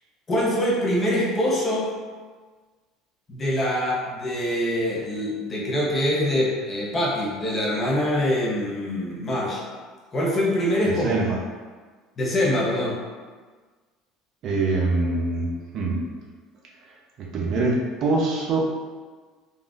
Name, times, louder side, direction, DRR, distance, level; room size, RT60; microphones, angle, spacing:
voice 1, 0.3-1.9 3.3-9.6 10.1-11.1 12.2-13.0, left 1 dB, 30° left, -4 dB, 0.8 m, -24 dB
voice 2, 10.8-11.4 14.4-16.0 17.2-18.6, right 3 dB, 55° right, -2 dB, 0.6 m, -24 dB
3.5 x 2.4 x 2.4 m, 1.4 s
supercardioid pair, 110°, 0 cm